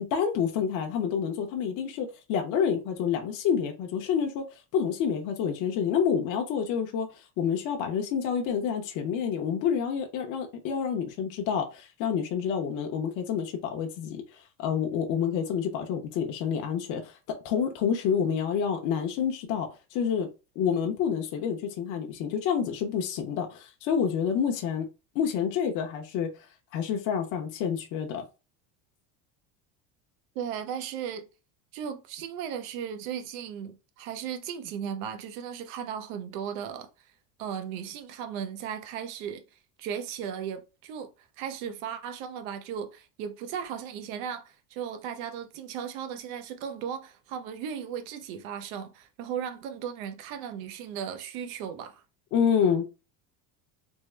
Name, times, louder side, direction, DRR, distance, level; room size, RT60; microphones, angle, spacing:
voice 1, 0.0-4.4 4.7-7.1 7.4-14.2 14.6-17.1 17.4-20.3 20.6-24.9 25.1-26.3 26.7-28.2 52.3-52.8, left 7 dB, 45° left, 0.7 m, -28 dB
voice 2, 30.3-31.3 31.7-36.9 37.4-39.4 39.8-41.1 41.4-52.0, right 8 dB, 80° right, 0.7 m, -36 dB
3.5 x 2.0 x 3.2 m
cardioid pair, 150°, 41 cm